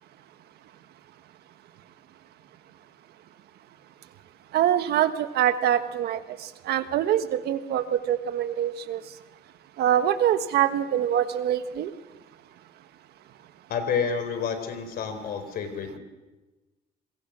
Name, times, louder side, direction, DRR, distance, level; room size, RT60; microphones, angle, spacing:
voice 1, 4.5-6.2 6.6-9.0 9.8-11.9, right 10 dB, 70° right, 10 dB, 1.4 m, -24 dB
voice 2, 13.7-16.0, left 6 dB, 65° left, 9 dB, 4.1 m, -29 dB
27.0 x 22.0 x 6.2 m, 1.1 s
cardioid pair, 110°, 17 cm